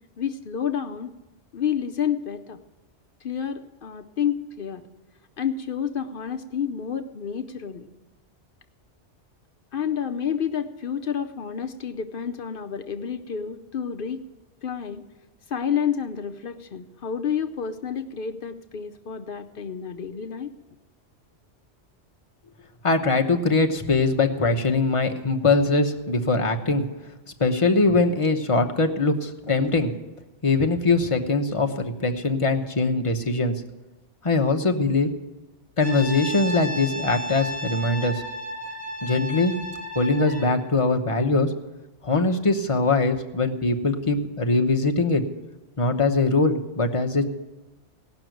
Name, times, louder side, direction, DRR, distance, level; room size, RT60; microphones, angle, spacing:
voice 1, 0.2-1.1 1.5-2.6 3.2-4.8 5.4-7.9 9.7-14.2 14.6-15.0 15.5-20.5, left 8 dB, 55° left, 7 dB, 0.7 m, -29 dB
voice 2, 22.8-26.8 27.4-29.9 30.4-33.5 34.2-35.1 35.8-38.2 39.0-39.5 39.9-41.5 42.0-45.2 45.8-47.3, left 3 dB, 30° left, 4 dB, 0.9 m, -22 dB
Brass instrument, 35.8-40.6, equal, 90° right, 5.4 m, -33 dB
17.5 x 6.1 x 9.1 m, 1.1 s
omnidirectional pair, 1.2 m